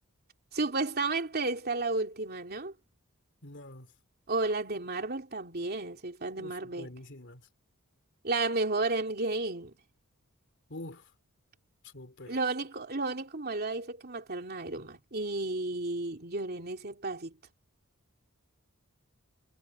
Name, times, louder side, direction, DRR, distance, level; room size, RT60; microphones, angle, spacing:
voice 1, 0.5-2.7 4.3-6.9 8.2-9.7 12.3-17.3, right 3 dB, 45° right, 3.1 m, -32 dB
voice 2, 3.4-3.9 6.4-7.4 10.7-11.0 11.9-12.3, left 1 dB, 55° left, 3.3 m, -45 dB
head